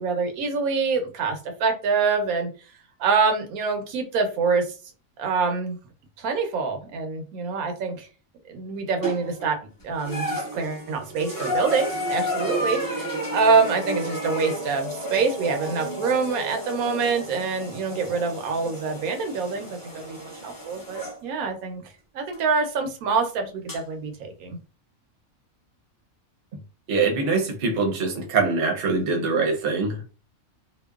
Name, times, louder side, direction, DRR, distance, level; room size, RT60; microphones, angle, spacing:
voice 1, 0.0-2.5 3.0-4.7 5.2-5.8 6.2-8.1 8.5-9.6 9.8-21.8 22.1-24.6, right 4 dB, 85° right, 1.1 m, -25 dB
sound 1, 9.0-9.5 10.0-21.2 22.3-22.4 23.7-23.8, equal, 25° left, 0.5 m, -32 dB
voice 2, 26.9-30.1, right 4 dB, 50° right, 0.7 m, -23 dB
2.9 x 2.0 x 2.3 m
omnidirectional pair, 1.5 m